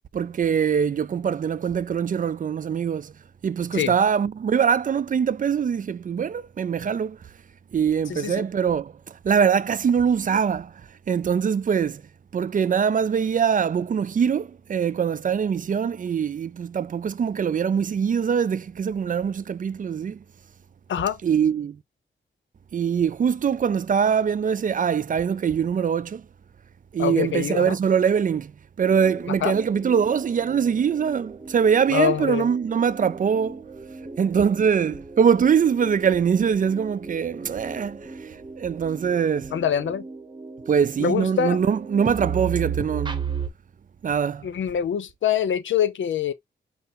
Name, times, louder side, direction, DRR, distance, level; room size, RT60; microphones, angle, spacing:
voice 1, 0.1-3.1 3.4-7.2 7.7-10.7 11.1-12.0 12.3-20.2 21.2-21.8 22.7-26.2 26.9-28.5 28.8-33.6 34.2-39.5 40.7-43.3 44.0-44.5, right 7 dB, 45° right, 0.4 m, -23 dB
voice 2, 8.1-8.4 20.9-21.2 27.0-27.8 29.4-29.5 31.9-32.5 39.5-40.1 41.0-41.6 44.4-46.3, left 9 dB, 80° left, 0.7 m, -24 dB
sound 1, 28.8-43.5, right 5 dB, 25° right, 0.9 m, -36 dB
5.7 x 2.0 x 4.1 m
wide cardioid pair, 95°, 20 cm